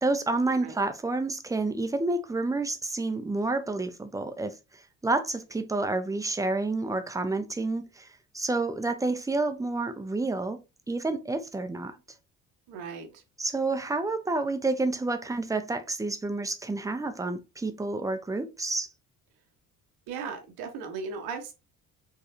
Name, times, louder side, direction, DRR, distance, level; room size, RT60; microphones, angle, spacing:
voice 1, 0.0-8.1 8.3-10.6 10.9-12.0 13.4-18.9, right 2 dB, 10° right, 0.8 m, -29 dB
voice 2, 12.7-13.2 20.1-21.5, right 5 dB, 60° right, 1.2 m, -37 dB
5.2 x 3.7 x 2.7 m
figure-of-eight pair, 50°, 43 cm